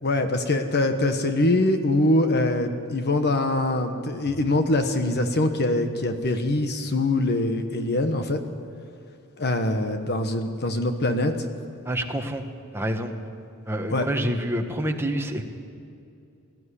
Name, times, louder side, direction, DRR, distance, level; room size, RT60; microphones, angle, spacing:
voice 1, 0.0-8.4 9.4-11.3 13.9-14.0, left 2 dB, 50° left, 7 dB, 1.3 m, -23 dB
voice 2, 11.8-12.4 12.7-13.1 13.6-15.5, right 1 dB, 10° right, 3 dB, 1.4 m, -27 dB
19.0 x 14.0 x 10.0 m, 2.5 s
head